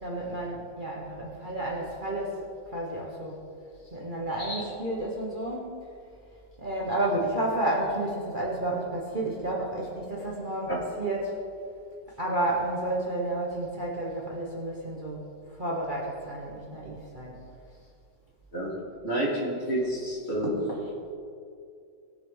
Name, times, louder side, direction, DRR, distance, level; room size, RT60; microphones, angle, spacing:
voice 1, 0.0-2.4 2.7-3.4 3.9-5.9 6.6-11.4 12.2-17.4, right 1 dB, 30° right, -4 dB, 1.4 m, -31 dB
voice 2, 19.0-20.6, right 1 dB, 35° left, -6 dB, 3.6 m, -29 dB
20.5 x 7.0 x 3.9 m, 2.4 s
omnidirectional pair, 1.8 m